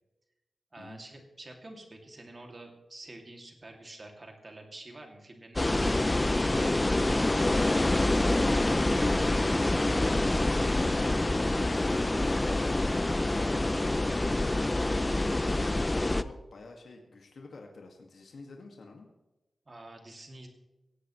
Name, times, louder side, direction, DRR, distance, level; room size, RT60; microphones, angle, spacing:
voice 1, 0.7-6.2 14.7-15.0 19.7-20.5, right 2 dB, 30° right, 2 dB, 2.6 m, -48 dB
sound 1, 5.6-16.2, left 2 dB, 15° left, 0.5 m, -26 dB
voice 2, 7.2-7.7 8.0-8.5 8.8-10.6 10.9-14.3 15.9-19.1, left 3 dB, 65° left, 1 dB, 2.0 m, -50 dB
17.5 x 16.5 x 3.2 m, 1.0 s
wide cardioid pair, 155°, 0 cm